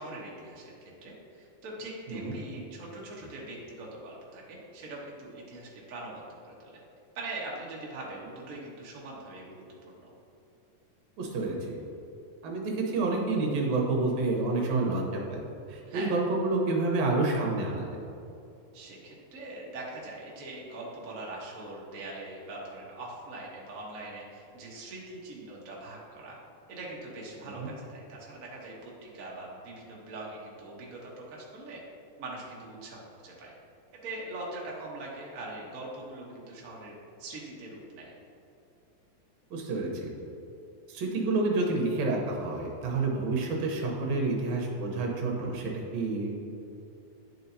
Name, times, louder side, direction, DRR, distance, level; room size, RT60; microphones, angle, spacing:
voice 1, 0.0-6.8 7.1-9.6 10.0-10.1 15.9-16.1 18.7-26.4 26.7-31.8 32.2-33.5 34.0-36.9 37.2-38.1, right 2 dB, 85° right, -4 dB, 0.7 m, -42 dB
voice 2, 11.2-11.8 12.4-15.4 15.7-17.9 27.6-27.7 39.5-40.1 40.9-46.3, right 3 dB, 70° right, 0 dB, 2.1 m, -29 dB
10.5 x 4.6 x 2.7 m, 2.7 s
omnidirectional pair, 3.6 m